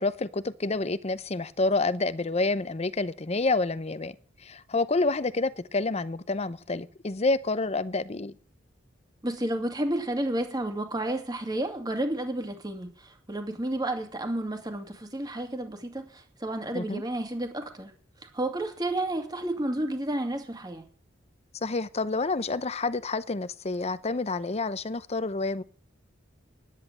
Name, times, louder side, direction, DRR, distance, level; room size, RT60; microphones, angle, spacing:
voice 1, 0.0-8.4 16.7-17.0 21.6-25.6, left 3 dB, 35° left, 0.7 m, -28 dB
voice 2, 9.2-17.9 18.2-20.8, right 1 dB, 20° right, 2.2 m, -31 dB
10.5 x 10.0 x 7.4 m
head